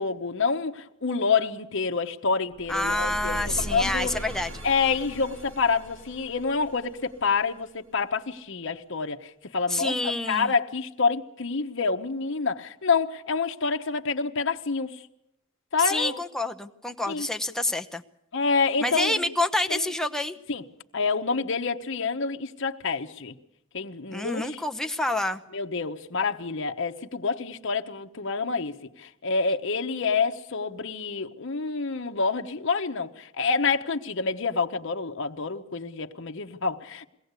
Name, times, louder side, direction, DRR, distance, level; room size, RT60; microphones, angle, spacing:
voice 1, 0.0-3.4 3.7-4.1 4.6-15.0 15.7-16.2 17.1-17.3 18.3-19.2 19.7-19.8 20.5-20.6 20.9-23.3 23.7-24.6 25.5-37.0, left 4 dB, 65° left, 4 dB, 1.0 m, -27 dB
sound 1, 2.5-7.6, equal, 90° right, 2.2 m, -39 dB
voice 2, 2.7-4.5 9.7-10.5 15.8-18.0 18.8-20.4 24.1-25.4, left 1 dB, ahead, 6 dB, 0.8 m, -28 dB
22.0 x 17.5 x 8.2 m, 0.81 s
head